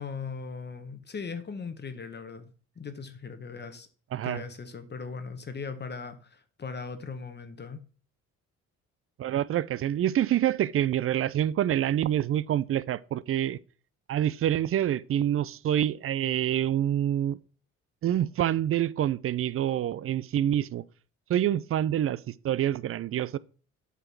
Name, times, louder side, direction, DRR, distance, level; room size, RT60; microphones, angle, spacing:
voice 1, 0.0-2.5 2.8-3.9 4.2-7.8, left 5 dB, 35° left, 1.0 m, -39 dB
voice 2, 4.1-4.4 9.2-13.6 14.1-17.4 18.0-20.8 21.3-23.4, right 11 dB, 45° right, 0.4 m, -27 dB
8.3 x 3.8 x 5.9 m
cardioid pair, 90°, 30 cm